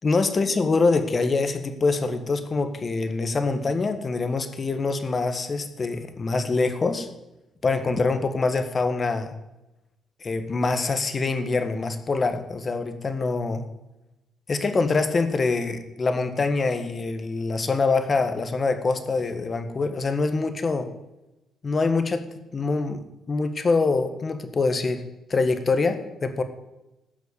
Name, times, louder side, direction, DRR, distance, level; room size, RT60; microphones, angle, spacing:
voice 1, 0.0-7.1 7.6-9.3 10.2-13.6 14.5-20.9 21.6-22.2 22.5-25.0 25.3-26.4, left 3 dB, 35° left, 8 dB, 1.6 m, -24 dB
16.0 x 6.3 x 8.4 m, 0.99 s
cardioid pair, 90°, 0 cm